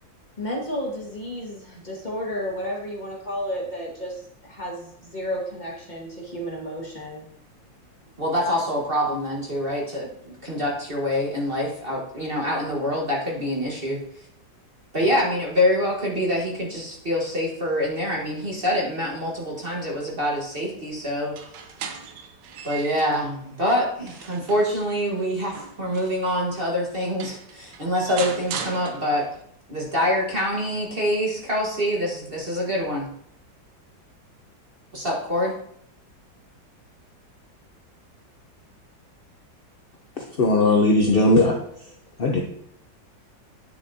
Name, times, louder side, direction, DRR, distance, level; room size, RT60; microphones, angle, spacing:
voice 1, 0.4-7.3, equal, 25° left, -3 dB, 1.9 m, -32 dB
voice 2, 8.2-14.0 14.9-21.4 22.6-29.3 29.7-33.1 34.9-35.5, equal, 30° right, -2 dB, 1.5 m, -25 dB
sound 1, 21.2-23.3 23.8-26.4 26.9-27.0 27.2-29.4, right 6 dB, 70° right, 1.4 m, -38 dB
voice 3, 40.2-41.6 42.2-42.4, left 2 dB, 55° left, 0 dB, 0.6 m, -18 dB
9.2 x 7.0 x 2.8 m, 0.68 s
omnidirectional pair, 2.0 m